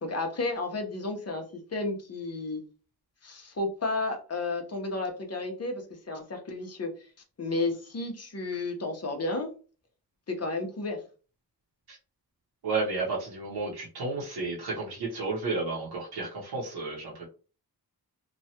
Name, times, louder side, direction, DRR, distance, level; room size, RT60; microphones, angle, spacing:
voice 1, 0.0-2.6 3.2-7.1 7.4-9.5 10.3-11.0, left 2 dB, 40° left, 3 dB, 0.9 m, -32 dB
voice 2, 12.6-17.3, right 3 dB, 80° right, -5 dB, 0.9 m, -32 dB
3.0 x 2.3 x 2.8 m, 0.37 s
wide cardioid pair, 85°, 38 cm